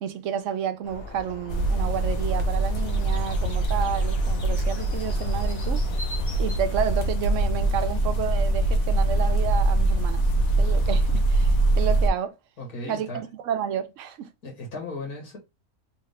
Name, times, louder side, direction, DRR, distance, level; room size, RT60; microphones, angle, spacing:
voice 1, 0.0-5.8 6.4-10.3 10.6-12.3 12.9-14.3, right 9 dB, 65° right, 0.9 m, -30 dB
sound 1, 0.8-6.6, left 1 dB, 45° left, 1.3 m, -39 dB
sound 2, 1.5-12.1, right 2 dB, 70° left, 1.3 m, -23 dB
voice 2, 12.6-13.2 14.4-15.4, left 2 dB, 90° left, 2.2 m, -36 dB
3.6 x 3.6 x 3.3 m
omnidirectional pair, 1.5 m